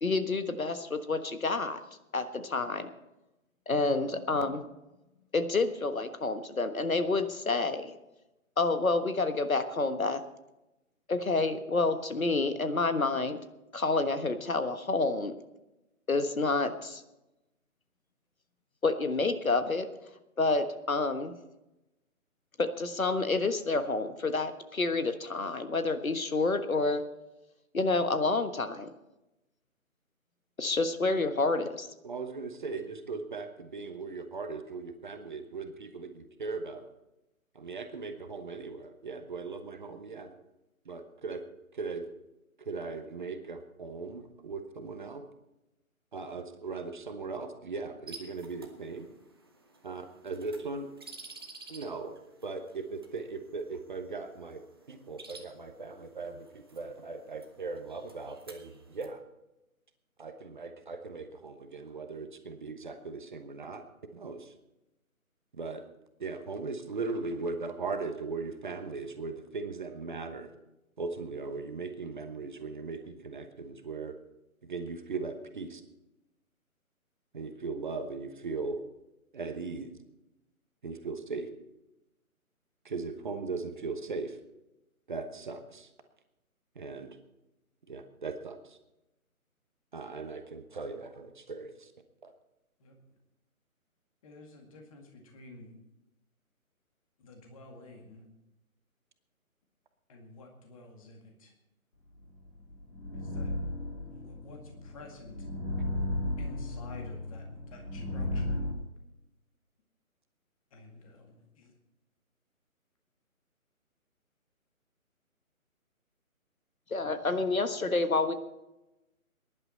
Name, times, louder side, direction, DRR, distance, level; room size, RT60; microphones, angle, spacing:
voice 1, 0.0-1.8 2.1-2.9 3.7-4.7 5.3-7.9 8.6-10.2 11.1-13.4 13.7-15.3 16.1-17.0 18.8-19.9 20.4-21.3 22.6-27.0 27.7-28.9 30.6-31.9 116.9-118.3, left 3 dB, 70° left, 9 dB, 1.5 m, -29 dB
voice 2, 32.0-36.9 37.5-40.3 40.9-41.4 41.7-42.0 42.6-45.2 46.1-49.1 49.8-50.9 51.7-52.1 52.4-54.6 54.9-59.2 60.2-63.8 64.1-64.5 65.6-65.8 66.2-70.5 71.0-74.2 74.6-75.8 77.3-78.8 79.3-79.9 80.8-81.5 82.8-84.4 85.1-85.9 86.7-87.2 87.9-88.8 89.9-91.9 92.2-92.3, right 4 dB, 35° right, 7 dB, 1.1 m, -38 dB
sound 1, 48.1-59.1, right 3 dB, 15° right, 0.7 m, -53 dB
voice 3, 94.2-95.7 97.2-98.3 100.1-101.5 103.1-103.5 104.1-105.4 106.4-108.6 110.7-111.7, left 2 dB, 25° left, 2 dB, 2.0 m, -51 dB
sound 2, 102.3-108.7, left 1 dB, 40° left, 3.3 m, -35 dB
20.0 x 11.0 x 4.3 m, 0.96 s
figure-of-eight pair, 145°, 43 cm